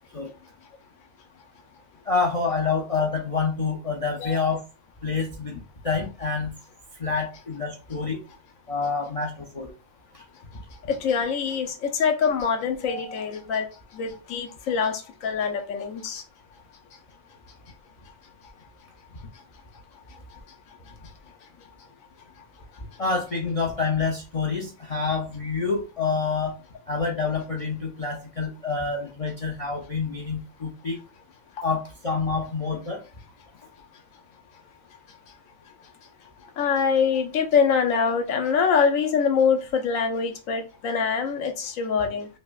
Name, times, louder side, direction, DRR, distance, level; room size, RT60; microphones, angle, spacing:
voice 1, 2.1-4.6 5.0-6.5 7.0-8.2 8.7-9.7 23.0-26.6 26.9-31.0 31.6-33.0, left 4 dB, 50° left, 1 dB, 0.4 m, -27 dB
voice 2, 4.2-4.6 10.9-13.7 13.9-16.2 36.6-42.3, left 6 dB, 80° left, 4 dB, 1.1 m, -24 dB
5.0 x 2.1 x 2.4 m, 0.32 s
omnidirectional pair, 1.4 m